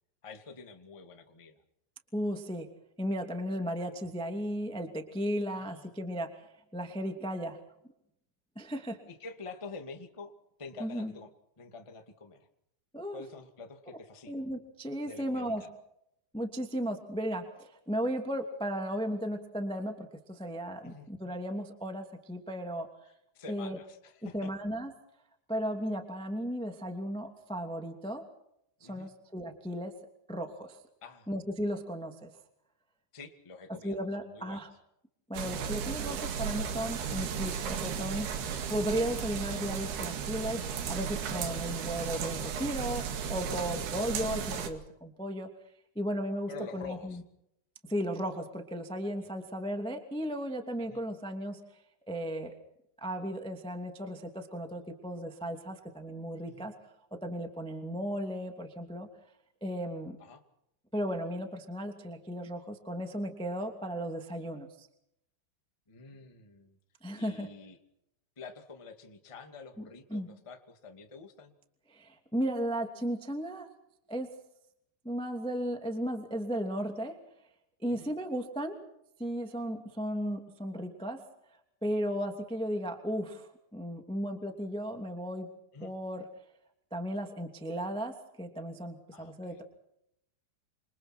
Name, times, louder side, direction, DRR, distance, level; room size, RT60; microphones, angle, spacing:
voice 1, 0.2-1.6 5.5-5.9 9.1-10.3 10.6-11.3 11.6-12.5 13.1-14.5 15.0-15.7 20.8-21.1 23.0-24.5 28.8-29.1 31.0-31.3 33.1-34.7 43.8-43.9 46.5-47.2 49.2-49.3 50.8-51.0 56.5-56.7 60.2-60.4 65.9-66.8 67.1-67.8 68.3-71.5 77.9-78.1 85.7-85.9 89.1-89.6, left 4 dB, 15° left, 4 dB, 0.9 m, -47 dB
voice 2, 2.1-2.7 3.0-6.5 6.7-7.6 8.5-9.0 10.8-11.1 12.9-13.2 14.3-15.6 16.3-22.9 23.5-23.8 24.2-24.9 25.5-28.2 28.8-29.9 30.3-30.8 31.3-32.3 33.8-34.7 35.3-45.5 45.9-47.2 47.9-51.6 52.1-52.5 53.0-56.7 57.2-59.1 59.6-60.2 60.9-64.9 67.0-67.5 69.8-69.9 70.1-70.3 71.9-73.7 74.1-74.3 75.0-77.2 77.8-78.8 79.2-81.2 81.8-85.5 85.8-86.3 86.9-89.6, equal, ahead, 4 dB, 1.3 m, -35 dB
sound 1, 35.3-44.7, right 7 dB, 65° right, 4.0 m, -35 dB
28.0 x 28.0 x 4.5 m, 0.79 s
omnidirectional pair, 5.1 m